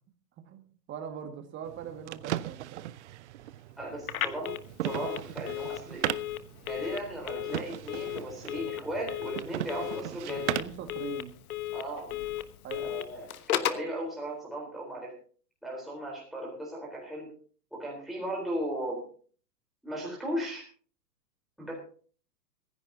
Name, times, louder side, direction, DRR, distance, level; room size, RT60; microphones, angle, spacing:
voice 1, 0.5-2.9 10.3-11.4 12.6-13.0, right 8 dB, 25° right, 5 dB, 2.0 m, -42 dB
sound 1, 1.7-10.9, right 14 dB, 45° right, 0.6 m, -38 dB
voice 2, 3.8-4.6 4.8-6.0 6.6-10.4 11.7-12.1 12.8-15.2 15.6-17.3 17.7-19.1 19.8-20.6 21.6-21.7, right 1 dB, ahead, -4 dB, 4.0 m, -36 dB
Telephone, 4.0-13.9, left 12 dB, 60° left, 1.3 m, -36 dB
25.5 x 10.5 x 2.8 m, 0.44 s
hypercardioid pair, 120°, 49 cm